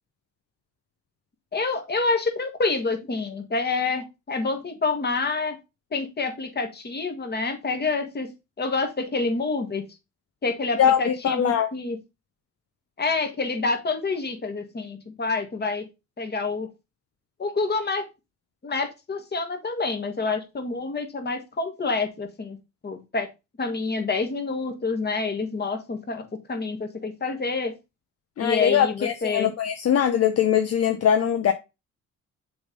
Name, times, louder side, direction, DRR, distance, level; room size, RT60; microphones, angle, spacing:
voice 1, 1.5-5.6 5.9-8.3 8.6-9.8 10.4-12.0 13.0-15.9 16.2-16.7 17.4-18.1 18.6-22.6 22.8-23.3 23.6-27.7 28.4-29.5, left 3 dB, 35° left, 1.9 m, -27 dB
voice 2, 10.8-11.7 28.4-31.5, left 9 dB, 55° left, 0.9 m, -21 dB
6.9 x 3.5 x 5.2 m
cardioid pair, 90°, 30 cm